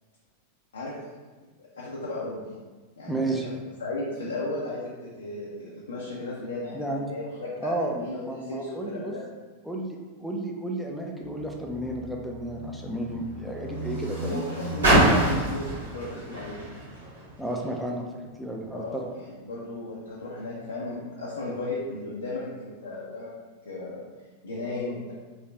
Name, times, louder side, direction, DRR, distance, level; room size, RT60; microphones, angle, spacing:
voice 1, 1.6-2.4 3.0-3.3 3.8-9.2 14.2-16.7 18.7-23.3 23.7-24.0 24.4-25.1, left 2 dB, 80° left, -6 dB, 0.4 m, -35 dB
voice 2, 3.1-3.5 6.7-7.1 7.6-9.1 9.6-14.4 17.4-19.0, right 1 dB, ahead, 0 dB, 0.4 m, -32 dB
Car, 11.2-17.8 18.6-18.7, right 1 dB, 80° right, 1.1 m, -27 dB
3.1 x 2.3 x 2.2 m, 1.3 s
hypercardioid pair, 95°, 0 cm